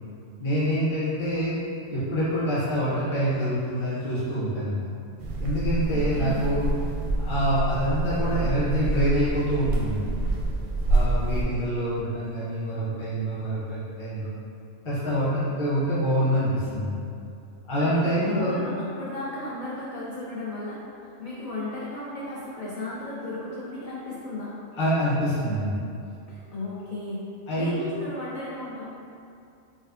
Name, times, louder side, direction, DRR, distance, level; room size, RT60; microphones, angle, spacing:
voice 1, 0.4-1.6 1.9-4.9 5.4-6.7 7.2-10.1 10.9-14.3 14.8-17.0 17.7-18.5 24.7-25.8 27.5-27.7, equal, 30° left, -12 dB, 0.7 m, -26 dB
sound 1, 5.2-11.4, right 2 dB, 60° right, 0.6 m, -27 dB
voice 2, 5.9-6.5 17.8-20.8 21.2-24.5 26.3-27.2 27.5-28.9, left 2 dB, 85° left, -8 dB, 0.3 m, -34 dB
4.7 x 2.3 x 2.4 m, 2.5 s
omnidirectional pair, 1.4 m